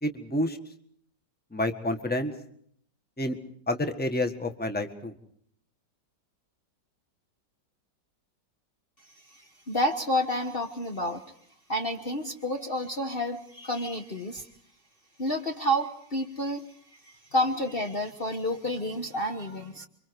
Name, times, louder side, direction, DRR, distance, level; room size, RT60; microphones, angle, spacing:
voice 1, 0.0-0.6 1.5-2.3 3.2-3.4 3.7-5.1, left 1 dB, 5° left, 7 dB, 1.6 m, -29 dB
voice 2, 9.3-11.2 11.7-14.5 15.2-16.7 17.1-19.9, equal, 35° left, 4 dB, 1.5 m, -30 dB
29.0 x 25.0 x 4.8 m, 0.64 s
omnidirectional pair, 1.9 m